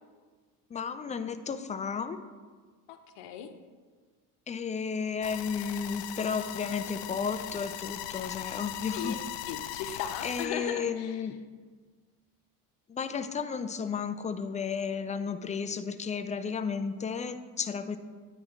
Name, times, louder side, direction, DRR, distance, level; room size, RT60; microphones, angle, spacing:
voice 1, 0.7-2.2 4.5-9.2 9.9-11.4 12.9-18.0, left 6 dB, 20° left, 11 dB, 0.3 m, -33 dB
voice 2, 2.9-3.5 8.9-9.2 9.5-11.2, left 8 dB, 65° left, 8 dB, 0.9 m, -37 dB
sound 1, 5.2-10.5, left 13 dB, 90° left, 0.5 m, -39 dB
9.4 x 3.2 x 5.9 m, 1.5 s
hypercardioid pair, 65°, 47 cm